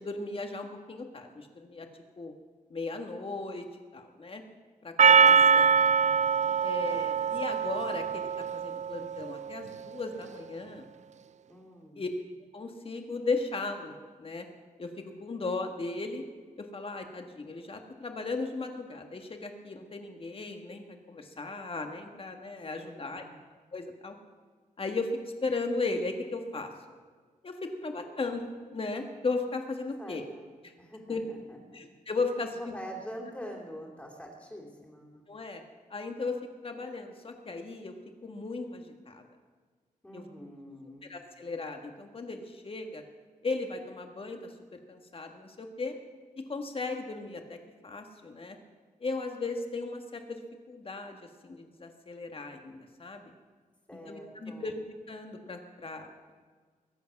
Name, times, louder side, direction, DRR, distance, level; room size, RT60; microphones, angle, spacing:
voice 1, 0.0-1.9 2.2-2.3 2.7-3.6 3.9-4.4 4.8-5.7 6.6-10.8 12.0-12.1 12.5-13.9 14.2-14.5 14.8-16.2 16.6-23.2 23.7-24.1 24.8-26.7 27.4-30.2 31.1-31.2 31.7-32.6 35.3-35.6 35.9-36.4 36.6-37.9 38.2-39.2 40.1-40.2 41.1-43.0 43.4-44.4 44.9-46.0 46.3-47.6 47.8-48.6 49.0-50.4 50.7-53.2 54.1-54.7 55.1-56.3, left 3 dB, 40° left, 5 dB, 1.6 m, -36 dB
Percussion, 5.0-9.3, right 6 dB, 55° right, 0.4 m, -23 dB
voice 2, 5.2-5.8 11.5-12.0 22.8-23.3 30.0-30.5 30.8-31.8 32.5-35.2 40.0-41.1 53.9-54.7, equal, 10° left, -3 dB, 2.7 m, -45 dB
21.5 x 8.4 x 5.9 m, 1.5 s
wide cardioid pair, 130°, 14 cm